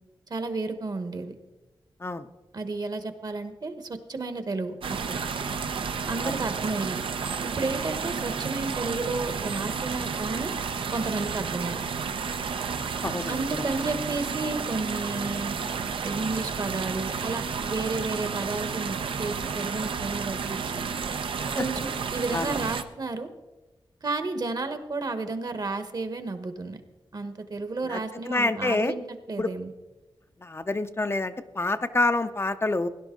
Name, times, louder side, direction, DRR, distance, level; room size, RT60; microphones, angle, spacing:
voice 1, 0.3-1.3 2.5-5.2 6.1-7.0 7.4-10.5 10.9-11.8 13.3-15.5 16.0-20.8 21.5-23.3 24.0-26.8 27.1-29.0 29.3-29.7, right 3 dB, 50° right, 9 dB, 1.3 m, -32 dB
sound 1, 4.8-22.8, right 5 dB, 85° right, 0.8 m, -31 dB
voice 2, 13.0-13.4 21.6-21.7 22.3-22.5 27.8-28.0 28.3-28.9 29.4-29.5 30.4-32.9, left 2 dB, 30° left, 10 dB, 0.6 m, -27 dB
17.5 x 11.0 x 3.8 m, 1.1 s
wide cardioid pair, 95°, 9 cm